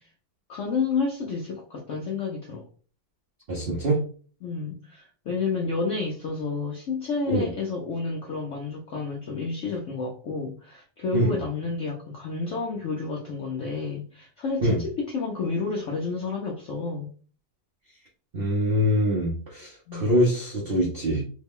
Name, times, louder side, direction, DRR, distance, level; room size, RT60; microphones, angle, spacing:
voice 1, 0.5-2.7 4.4-17.1 19.9-20.1, left 4 dB, 85° left, 0 dB, 0.6 m, -30 dB
voice 2, 3.5-4.0 7.3-7.5 11.1-11.3 14.6-14.8 18.3-21.2, equal, 50° right, -4 dB, 0.6 m, -24 dB
3.3 x 2.2 x 3.5 m, 0.41 s
omnidirectional pair, 2.0 m